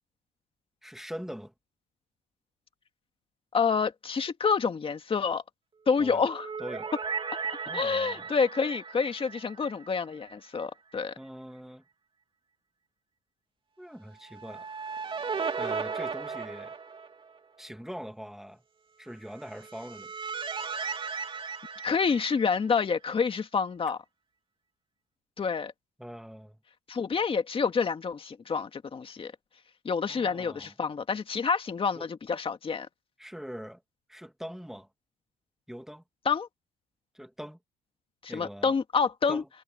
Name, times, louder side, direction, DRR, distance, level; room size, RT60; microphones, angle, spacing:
voice 1, 0.8-1.5 6.0-6.3 6.6-6.9 7.7-8.3 11.2-11.8 13.8-14.7 15.6-16.8 17.6-18.6 19.0-20.1 26.0-26.6 30.1-30.7 32.0-32.1 33.2-33.8 34.1-34.9 35.7-36.0 37.1-37.6 38.3-38.7 39.3-39.5, equal, ahead, 2.3 m, -42 dB
voice 2, 3.5-5.4 5.9-6.5 7.7-11.2 21.8-24.0 25.4-25.7 26.9-29.3 29.8-32.9 36.3-36.5 38.2-39.4, left 5 dB, 30° left, 2.0 m, -28 dB
sound 1, 6.0-10.3 10.6-10.7 14.3-17.4 19.4-22.8, right 5 dB, 30° right, 2.9 m, -36 dB
cardioid pair, 110°, 17 cm